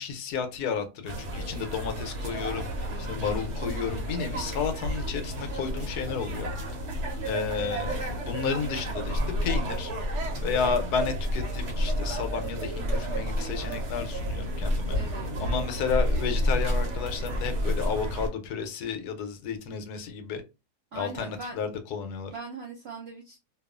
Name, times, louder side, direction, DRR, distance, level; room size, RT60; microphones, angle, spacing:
voice 1, 0.0-6.5 7.2-9.9 10.4-15.0 15.4-20.4 20.9-22.3, left 6 dB, 80° left, 1.1 m, -32 dB
sound 1, 1.0-18.3, equal, 55° right, 1.0 m, -30 dB
voice 2, 2.9-3.2 14.9-15.6 20.9-21.6 22.3-23.4, right 3 dB, 70° right, 0.6 m, -41 dB
2.7 x 2.3 x 2.3 m
omnidirectional pair, 1.7 m